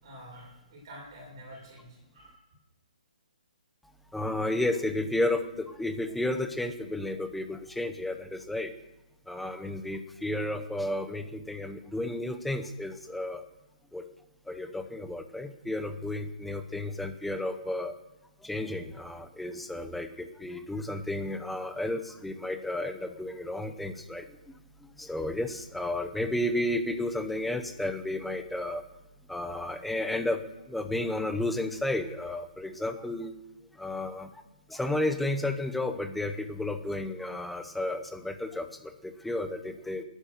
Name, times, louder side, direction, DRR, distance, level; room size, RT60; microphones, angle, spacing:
voice 1, 0.0-2.5, equal, 30° right, -1 dB, 6.6 m, -48 dB
voice 2, 4.1-8.7 9.3-13.4 13.9-14.0 14.5-17.9 18.4-24.2 25.0-28.8 29.3-30.4 30.7-33.3 33.8-34.3 34.7-40.0, left 1 dB, ahead, 8 dB, 0.7 m, -32 dB
20.5 x 10.0 x 6.6 m, 0.94 s
hypercardioid pair, 175°, 5 cm